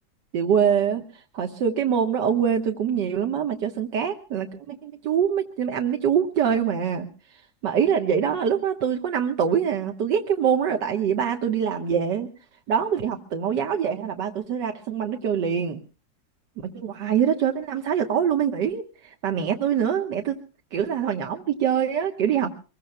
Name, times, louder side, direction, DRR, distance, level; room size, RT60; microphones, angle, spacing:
voice 1, 0.3-12.3 12.7-15.8 16.6-20.4 20.7-22.5, right 8 dB, 70° right, 4 dB, 1.8 m, -24 dB
25.0 x 21.5 x 2.2 m, 0.37 s
omnidirectional pair, 2.0 m